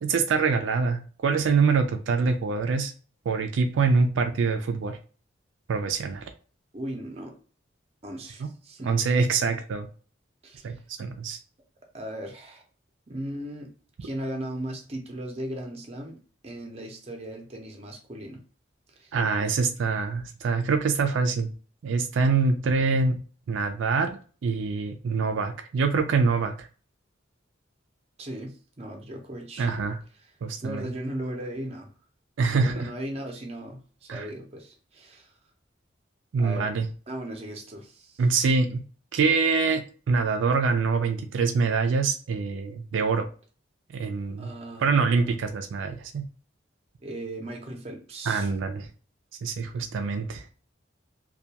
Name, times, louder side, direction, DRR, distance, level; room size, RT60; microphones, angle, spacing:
voice 1, 0.0-2.9 3.3-5.0 5.7-6.3 8.8-9.9 10.6-11.4 19.1-21.5 21.8-23.2 23.5-26.7 29.6-30.0 30.4-30.9 32.4-32.9 34.1-34.3 36.3-36.9 38.2-38.8 39.1-43.3 43.9-44.5 44.8-46.2 48.3-48.9 49.4-50.4, right 4 dB, 75° right, 0.4 m, -25 dB
voice 2, 6.7-7.4 8.0-9.0 10.4-10.8 11.9-12.7 13.1-13.7 14.0-18.4 19.0-19.2 28.2-29.7 30.6-31.9 32.6-35.3 36.4-36.7 37.1-38.2 44.4-45.4 47.0-48.5, right 1 dB, 30° right, 0.5 m, -37 dB
2.3 x 2.2 x 2.8 m
head